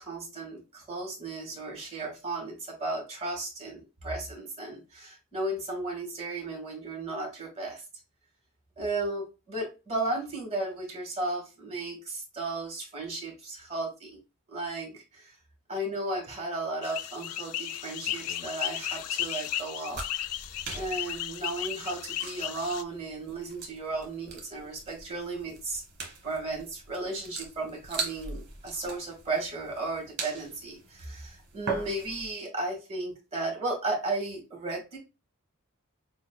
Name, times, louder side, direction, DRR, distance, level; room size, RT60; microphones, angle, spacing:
voice 1, 0.0-7.8 8.8-14.1 14.5-15.3 15.7-20.0 20.7-25.8 26.2-35.0, right 2 dB, 30° right, 0 dB, 1.7 m, -35 dB
sound 1, 16.8-22.8, left 12 dB, 85° left, 0.4 m, -35 dB
sound 2, 19.9-32.3, right 4 dB, 50° right, 1.5 m, -41 dB
6.5 x 2.3 x 2.2 m, 0.28 s
head